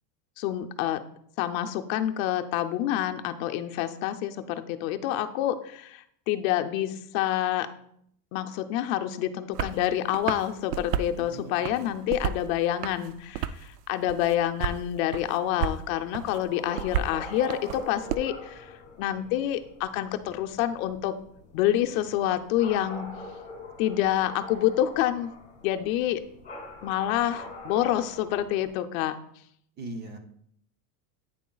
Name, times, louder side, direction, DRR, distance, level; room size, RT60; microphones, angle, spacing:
voice 1, 0.4-1.0 1.4-7.7 8.3-21.1 21.5-23.1 23.8-25.3 25.6-26.2 26.8-29.1, left 12 dB, 60° left, 7 dB, 0.7 m, -27 dB
sound 1, 9.5-9.8 10.1-11.1 11.6-12.5 12.8-13.7 14.1-14.8 15.1-15.8 16.1-18.2, right 9 dB, 90° right, 0.6 m, -31 dB
voice 2, 11.2-11.9 29.8-30.2, right 2 dB, 25° right, 6 dB, 0.6 m, -40 dB
sound 2, 16.1-28.7, left 2 dB, 15° left, 2.6 m, -44 dB
9.2 x 7.1 x 2.3 m, 0.69 s
supercardioid pair, 155°, 46 cm